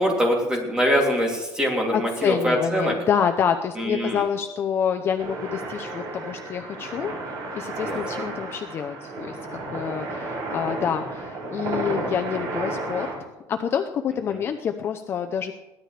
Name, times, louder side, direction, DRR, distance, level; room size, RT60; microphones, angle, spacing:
voice 1, 0.0-3.0 3.8-4.2 7.7-8.0 14.3-14.4, equal, 10° right, -1 dB, 2.9 m, -23 dB
voice 2, 1.9-7.1 7.5-13.1 13.5-15.5, left 8 dB, 30° left, 6 dB, 0.6 m, -27 dB
sound 1, 5.2-13.1, right 2 dB, 55° right, 7.1 m, -32 dB
22.0 x 16.0 x 3.4 m, 1.1 s
cardioid pair, 175°, 8 cm